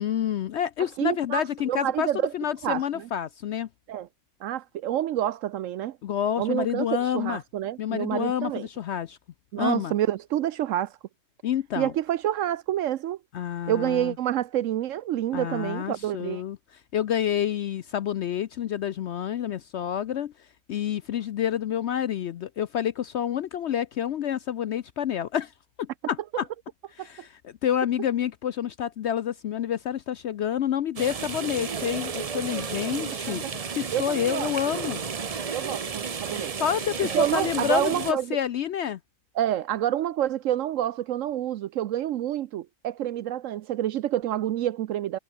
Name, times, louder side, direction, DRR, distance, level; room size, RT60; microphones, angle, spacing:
voice 1, 0.0-3.7 6.0-7.4 7.8-9.2 9.6-9.9 11.4-11.9 13.3-14.1 15.3-16.6 16.9-20.3 20.7-25.5 25.8-26.5 27.0-35.0 36.6-39.0, left 9 dB, 65° left, 0.7 m, -28 dB
voice 2, 1.0-2.3 2.6-3.1 3.9-4.1 4.4-6.0 6.4-8.7 9.5-10.9 11.8-13.2 13.7-16.4 27.0-27.1 33.4-33.5 33.9-34.7 35.5-36.6 37.1-38.4 39.4-45.2, right 12 dB, 70° right, 0.8 m, -28 dB
sound 1, 31.0-38.1, right 5 dB, 35° right, 0.6 m, -33 dB
omnidirectional pair, 1.6 m